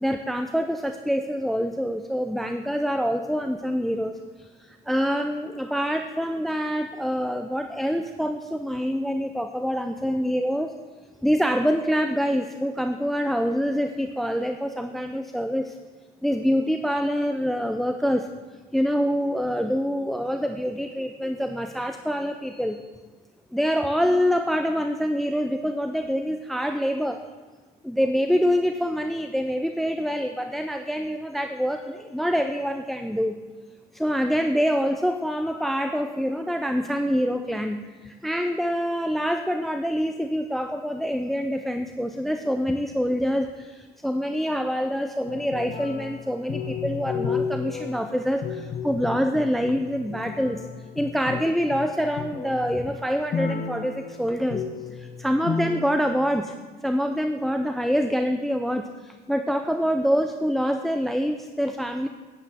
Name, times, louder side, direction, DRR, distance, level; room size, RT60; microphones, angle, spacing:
voice 1, 0.0-10.7 11.2-15.8 16.2-18.3 18.7-22.9 23.5-27.2 27.8-33.4 33.9-50.7 51.0-54.6 54.9-56.5 56.8-62.1, equal, ahead, 7 dB, 0.3 m, -26 dB
sound 1, 45.3-55.9, left 6 dB, 45° left, 0.6 m, -33 dB
9.7 x 9.7 x 3.4 m, 1.4 s
cardioid pair, 110°, 17 cm